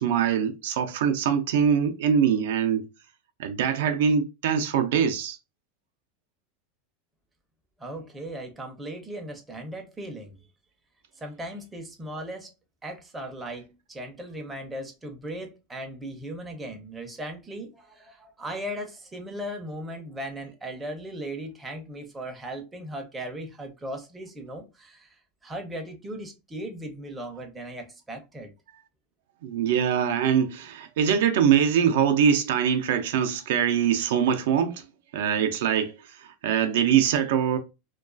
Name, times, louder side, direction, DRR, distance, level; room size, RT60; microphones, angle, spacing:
voice 1, 0.0-2.9 3.4-5.4 29.4-34.9 35.1-37.6, right 8 dB, 75° right, 0.4 m, -23 dB
voice 2, 7.8-10.4 11.2-12.5 12.8-28.5, right 1 dB, 10° right, 0.5 m, -37 dB
2.3 x 2.3 x 2.4 m
supercardioid pair, 160°, 0 cm